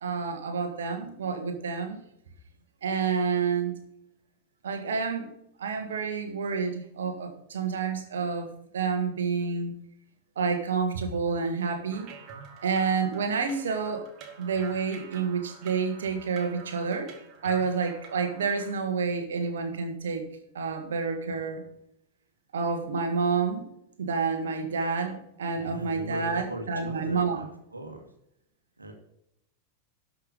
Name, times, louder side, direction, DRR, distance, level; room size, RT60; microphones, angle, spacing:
voice 1, 0.0-2.0 2.8-3.7 4.6-5.3 5.6-9.7 10.3-12.1 12.6-14.1 14.4-17.1 17.4-20.3 20.5-21.6 22.5-23.6 24.0-27.5, right 5 dB, 65° right, 7 dB, 1.6 m, -29 dB
sound 1, 11.9-18.7, right 6 dB, 35° right, 1.8 m, -47 dB
voice 2, 25.5-27.5 27.7-28.1 28.8-28.9, right 1 dB, 80° right, 4 dB, 1.8 m, -39 dB
12.0 x 5.8 x 5.4 m, 0.76 s
figure-of-eight pair, 90°, 0 cm